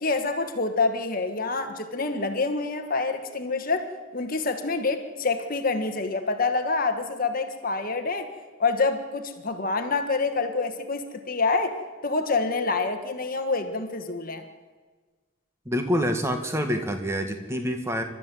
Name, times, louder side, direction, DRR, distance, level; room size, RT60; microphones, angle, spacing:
voice 1, 0.0-8.3 8.6-14.4, left 3 dB, 40° left, 6 dB, 1.4 m, -27 dB
voice 2, 15.7-18.0, equal, 15° right, 6 dB, 1.7 m, -26 dB
29.0 x 13.0 x 7.6 m, 1.4 s
head